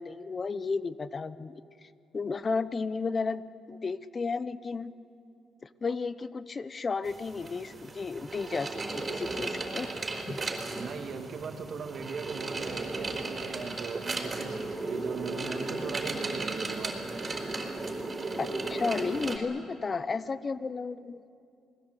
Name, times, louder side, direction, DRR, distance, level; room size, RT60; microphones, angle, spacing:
voice 1, 0.0-1.9 2.1-3.4 3.7-4.9 5.6-9.9 10.3-10.4 18.4-21.2, left 4 dB, 35° left, 15 dB, 0.9 m, -33 dB
sound 1, 7.0-19.4, right 3 dB, 30° right, 4.3 m, -35 dB
voice 2, 10.8-16.9, right 5 dB, 60° right, 4 dB, 2.4 m, -38 dB
28.5 x 20.5 x 8.2 m, 2.5 s
cardioid pair, 90°, 0 cm